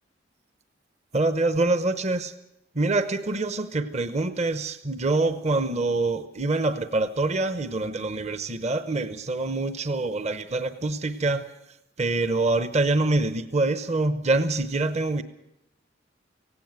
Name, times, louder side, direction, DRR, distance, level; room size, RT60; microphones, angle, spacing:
voice 1, 1.1-2.3 2.7-11.4 12.0-15.2, right 2 dB, 35° right, 11 dB, 0.9 m, -25 dB
17.0 x 17.0 x 9.1 m, 0.85 s
head